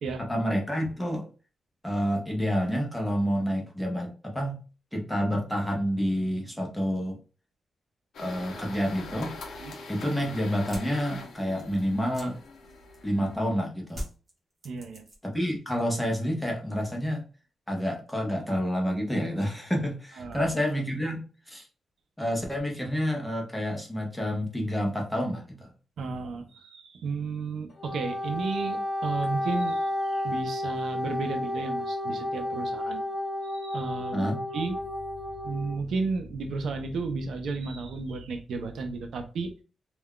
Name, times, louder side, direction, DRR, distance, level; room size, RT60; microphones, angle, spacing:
voice 1, 0.2-1.3 1.8-4.6 4.9-7.2 8.2-9.3 9.9-12.4 13.0-14.0 15.2-17.2 17.7-21.7 22.2-25.7 34.1-34.4, equal, 5° left, 0 dB, 0.7 m, -29 dB
sound 1, 8.1-13.5, left 3 dB, 75° left, 0.6 m, -43 dB
sound 2, 10.7-13.3 13.9-15.4 15.7-16.3, equal, 25° right, 0.9 m, -42 dB
voice 2, 14.6-15.0 20.2-20.5 26.0-33.0 33.4-34.3 34.5-34.8 35.4-39.5, right 4 dB, 70° right, 6 dB, 0.4 m, -33 dB
Wind instrument woodwind instrument, 27.7-35.8, left 1 dB, 50° left, 0.9 m, -32 dB
2.3 x 2.2 x 3.5 m, 0.36 s
wide cardioid pair, 170°, 0 cm